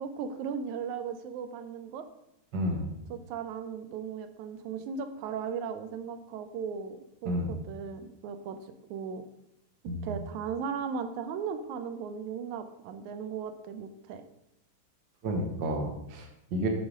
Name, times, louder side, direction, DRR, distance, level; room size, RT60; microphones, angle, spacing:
voice 1, 0.0-2.1 3.1-8.6 8.9-9.2 10.0-14.2, right 6 dB, 75° right, 9 dB, 2.0 m, -37 dB
voice 2, 2.5-2.9 7.2-7.5 9.9-10.2 15.2-16.7, right 1 dB, 60° right, 2 dB, 1.2 m, -31 dB
11.0 x 4.8 x 5.1 m, 0.86 s
omnidirectional pair, 3.7 m